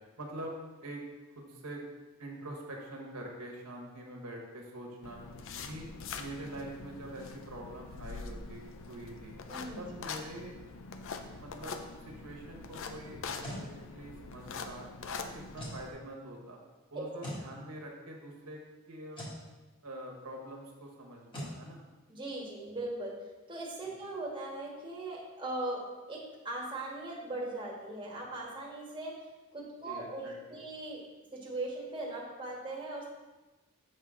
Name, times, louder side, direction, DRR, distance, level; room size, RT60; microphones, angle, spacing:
voice 1, 0.2-1.0 1.3-1.8 2.2-5.2 5.6-5.9 6.2-9.4 9.8-10.5 11.4-11.8 12.0-14.9 15.5-16.6 16.9-18.6 18.9-19.2 19.8-21.8 23.9-24.0 29.8-30.6, right 1 dB, 85° right, 0 dB, 1.4 m, -45 dB
sound 1, 5.0-15.9, left 4 dB, 60° left, 0.5 m, -44 dB
voice 2, 9.5-9.8 16.9-17.0 22.1-23.2 23.5-25.8 26.1-29.1 29.5-31.0 31.3-33.1, right 2 dB, 20° right, -4 dB, 1.3 m, -39 dB
sound 2, 13.1-13.7 15.5-15.8 17.2-17.5 19.1-19.4 21.3-21.6, equal, 20° left, 1.6 m, -40 dB
7.1 x 5.6 x 3.7 m, 1.2 s
head